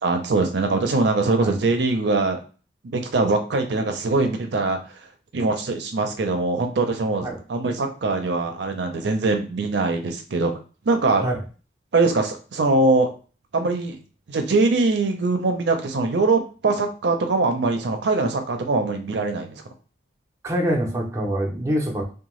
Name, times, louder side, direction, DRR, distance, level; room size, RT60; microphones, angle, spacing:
voice 1, 0.0-2.4 2.9-4.8 5.3-10.5 10.9-11.2 11.9-13.1 13.5-14.0 14.3-19.6, right 3 dB, 75° right, 5 dB, 0.5 m, -22 dB
voice 2, 20.4-22.0, equal, 15° right, -1 dB, 0.6 m, -25 dB
2.7 x 2.2 x 3.0 m, 0.36 s
head